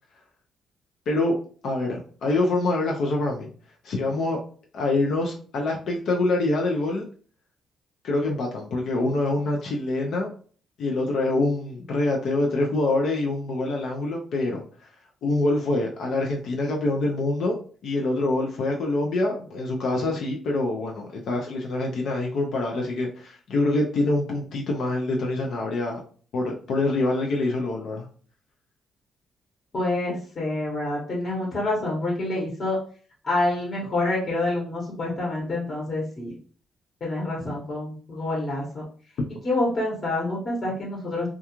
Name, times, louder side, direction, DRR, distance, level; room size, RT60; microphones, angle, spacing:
voice 1, 1.1-1.4 1.6-3.5 3.8-4.4 4.7-7.1 8.0-10.3 10.8-14.6 15.2-17.5 17.8-26.0 26.3-28.1, left 2 dB, 70° left, 0 dB, 0.5 m, -25 dB
voice 2, 29.7-32.8 33.2-36.3 37.0-38.8 39.4-41.3, left 2 dB, 45° left, -4 dB, 1.0 m, -27 dB
2.3 x 2.2 x 2.9 m, 0.43 s
cardioid pair, 80°, 0 cm